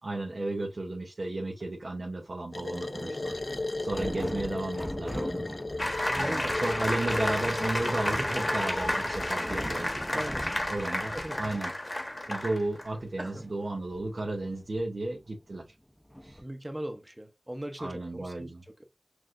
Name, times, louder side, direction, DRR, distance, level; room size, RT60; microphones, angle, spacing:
voice 1, 0.0-3.4 3.8-5.5 6.1-10.2 10.7-11.7 12.3-15.7 16.2-16.4 17.8-18.6, right 2 dB, 85° right, 0.7 m, -34 dB
sound 1, 1.6-1.8 3.1-11.7 12.0-12.1 12.3-15.6 16.1-16.4, equal, 5° left, 0.6 m, -41 dB
sound 2, 2.5-9.6, left 2 dB, 70° left, 0.5 m, -36 dB
voice 2, 2.6-3.7 6.1-6.7 10.1-10.7 11.1-11.5 13.2-13.4 16.4-18.9, right 1 dB, 25° right, 0.8 m, -40 dB
sound 3, 5.8-12.9, left 1 dB, 40° left, 1.1 m, -31 dB
6.0 x 2.5 x 2.4 m
wide cardioid pair, 45°, 0 cm